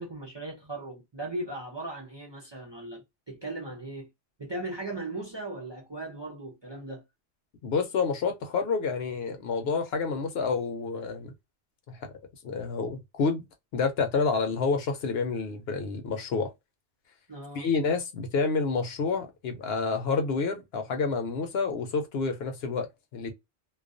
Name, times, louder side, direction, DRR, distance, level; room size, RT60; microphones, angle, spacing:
voice 1, 0.0-4.1 4.4-7.0 17.3-17.7, right 2 dB, 35° right, 0.5 m, -38 dB
voice 2, 7.6-11.3 11.9-12.0 12.4-13.4 13.7-16.5 17.6-23.3, left 4 dB, 70° left, 0.8 m, -29 dB
2.3 x 2.3 x 2.4 m
omnidirectional pair, 1.1 m